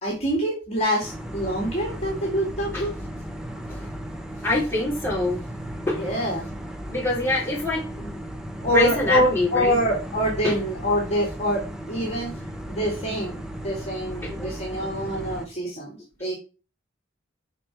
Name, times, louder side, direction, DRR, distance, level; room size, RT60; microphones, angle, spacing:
voice 1, 0.0-2.9 5.9-6.5 8.6-11.6 11.9-12.3 12.7-16.3, equal, 35° left, -2 dB, 1.9 m, -25 dB
sound 1, 1.0-15.5, equal, 5° right, 0.9 m, -36 dB
voice 2, 4.4-5.4 5.9-6.0 6.9-8.2 8.7-9.7 10.4-10.5 12.0-12.1 14.2-14.4, left 2 dB, 10° left, -6 dB, 3.1 m, -25 dB
5.8 x 5.0 x 4.6 m, 0.33 s
head